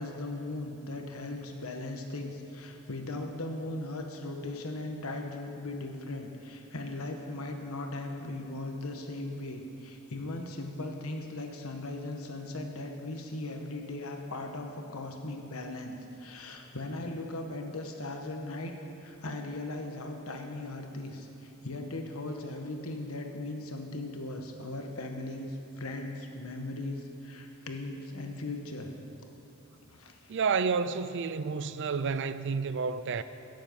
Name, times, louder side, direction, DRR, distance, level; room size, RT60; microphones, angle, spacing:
voice 1, 0.0-18.7 19.0-28.9 29.9-30.4 33.1-33.2, left 2 dB, 80° left, 1.3 m, -38 dB
voice 2, 30.3-33.2, right 5 dB, 55° right, 0.4 m, -30 dB
16.5 x 7.5 x 5.4 m
head